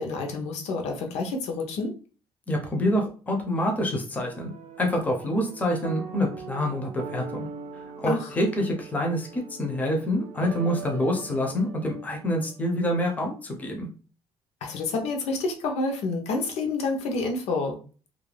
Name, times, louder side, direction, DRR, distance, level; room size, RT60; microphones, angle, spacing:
voice 1, 0.0-1.9 8.1-8.3 14.6-17.8, left 3 dB, 80° left, 3 dB, 0.7 m, -28 dB
voice 2, 2.5-4.5 4.8-7.5 7.7-13.9, left 1 dB, 15° left, 2 dB, 0.5 m, -27 dB
sound 1, 4.3-12.7, right 6 dB, 80° right, 0.4 m, -42 dB
2.4 x 2.1 x 3.2 m, 0.38 s
cardioid pair, 165°, 11 cm